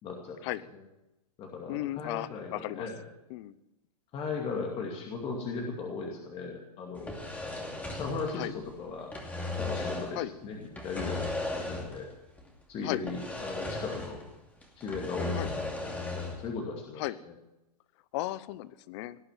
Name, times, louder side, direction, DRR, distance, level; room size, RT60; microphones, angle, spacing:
voice 1, 0.0-0.4 1.4-3.0 4.1-7.2 7.9-9.1 9.6-12.1 12.7-14.2 14.8-17.3, left 4 dB, 30° left, 0 dB, 2.4 m, -37 dB
voice 2, 1.7-2.9 3.3-3.5 8.3-8.5 10.1-10.3 12.8-13.0 15.3-15.5 17.0-17.2 18.1-19.2, left 16 dB, 45° left, 18 dB, 0.8 m, -35 dB
sound 1, 7.0-8.7 9.0-10.2 10.7-12.1 12.4-12.5 13.1-14.3 14.6-16.5, left 2 dB, 5° left, 2.6 m, -36 dB
18.5 x 8.9 x 7.4 m, 0.95 s
hypercardioid pair, 125°, 20 cm